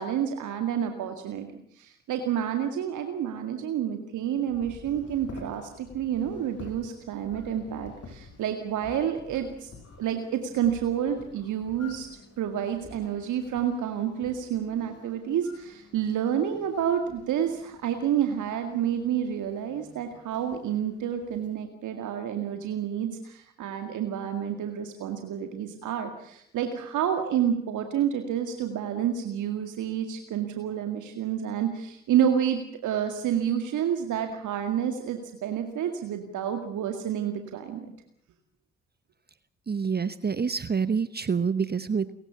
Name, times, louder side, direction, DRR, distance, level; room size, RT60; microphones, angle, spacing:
voice 1, 0.0-1.5 1.7-9.7 10.0-12.1 12.4-37.9, right 9 dB, 65° right, 6 dB, 2.1 m, -29 dB
sound 1, 4.3-21.5, left 3 dB, 50° left, 7.6 m, -50 dB
voice 2, 39.7-42.1, right 5 dB, 30° right, 14 dB, 1.0 m, -27 dB
30.0 x 16.0 x 7.0 m, 0.70 s
hypercardioid pair, 45°, 32 cm